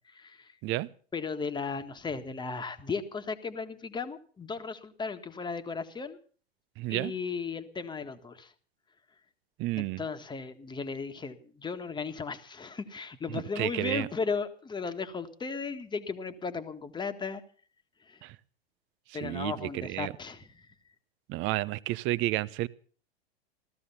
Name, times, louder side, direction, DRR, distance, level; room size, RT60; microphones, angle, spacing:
voice 1, 0.1-0.6 1.1-6.2 6.9-8.5 9.8-17.4 18.0-18.2 19.1-20.7, left 5 dB, 15° left, 1.6 m, -36 dB
voice 2, 6.8-7.1 9.6-10.0 13.3-14.1 18.2-18.4 19.1-20.1 21.3-22.7, right 17 dB, 40° right, 0.8 m, -31 dB
15.5 x 14.0 x 5.7 m
hypercardioid pair, 100°, 31 cm